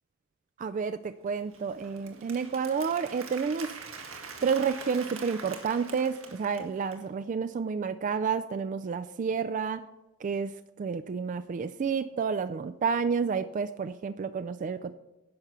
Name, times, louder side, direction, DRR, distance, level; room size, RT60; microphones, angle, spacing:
voice 1, 0.6-3.7 4.4-9.8 10.2-14.9, right 5 dB, 40° right, 11 dB, 0.3 m, -30 dB
Applause, 1.2-7.0, right 5 dB, 80° right, 1.7 m, -44 dB
10.5 x 5.8 x 6.6 m, 1.1 s
head